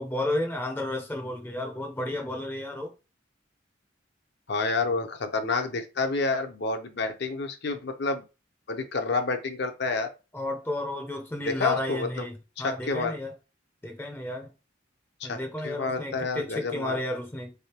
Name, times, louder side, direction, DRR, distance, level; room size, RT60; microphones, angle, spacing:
voice 1, 0.0-2.9 10.3-13.3 13.8-14.5 15.2-17.5, left 1 dB, 10° left, 0.5 m, -32 dB
voice 2, 4.5-8.2 8.7-10.1 11.4-12.3 12.6-13.2 15.2-17.0, left 3 dB, 60° left, 0.6 m, -29 dB
3.5 x 3.4 x 2.8 m
head